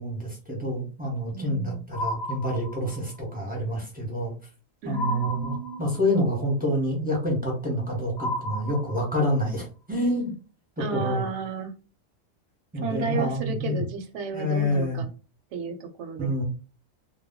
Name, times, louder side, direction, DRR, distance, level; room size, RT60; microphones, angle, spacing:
voice 1, 0.0-4.3 4.8-10.3 10.9-11.3 12.7-13.8 14.3-15.0 16.2-16.4, equal, 10° right, -2 dB, 0.7 m, -27 dB
voice 2, 1.3-1.8 4.8-5.9 10.8-11.7 12.8-15.1 15.5-16.4, right 4 dB, 70° right, 7 dB, 0.9 m, -33 dB
sound 1, 1.9-3.2 4.9-6.2 8.2-9.4, left 1 dB, 50° left, 0.6 m, -33 dB
2.2 x 2.2 x 3.5 m, 0.34 s
omnidirectional pair, 1.4 m